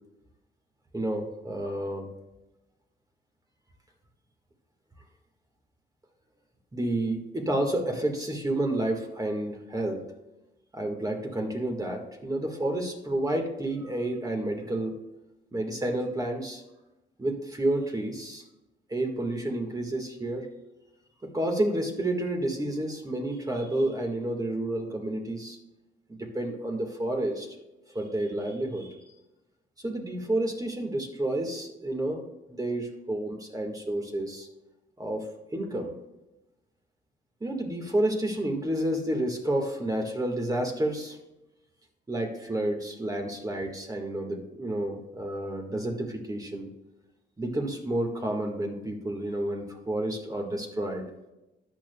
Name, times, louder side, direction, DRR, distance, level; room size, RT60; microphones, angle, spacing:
voice 1, 0.9-2.1 6.7-10.0 10.7-15.0 15.5-16.6 17.2-18.4 18.9-20.5 21.2-25.6 26.1-27.5 27.9-29.0 29.8-32.2 32.5-34.5 35.0-35.9 37.4-41.2 42.1-46.7 47.4-51.1, right 1 dB, 20° right, 2 dB, 1.7 m, -30 dB
13.0 x 8.8 x 2.3 m, 0.97 s
cardioid pair, 90°, 20 cm